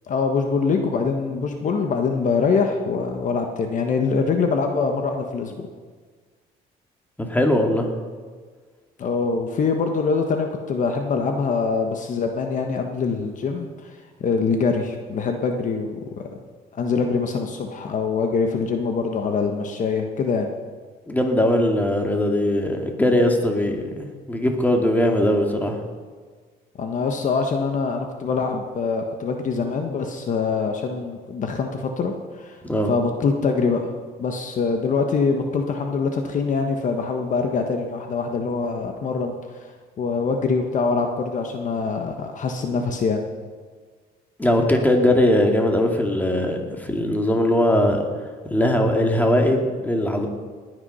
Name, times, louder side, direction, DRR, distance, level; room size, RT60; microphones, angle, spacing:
voice 1, 0.1-5.7 9.0-16.0 16.7-20.5 26.8-32.6 32.9-33.9 34.2-39.7 40.0-43.3, left 4 dB, 50° left, 4 dB, 1.4 m, -24 dB
voice 2, 7.2-7.9 21.1-25.8 32.6-32.9 44.4-48.0 48.5-50.3, left 1 dB, 10° left, 2 dB, 2.3 m, -20 dB
19.5 x 9.7 x 5.6 m, 1.5 s
cardioid pair, 110°, 17 cm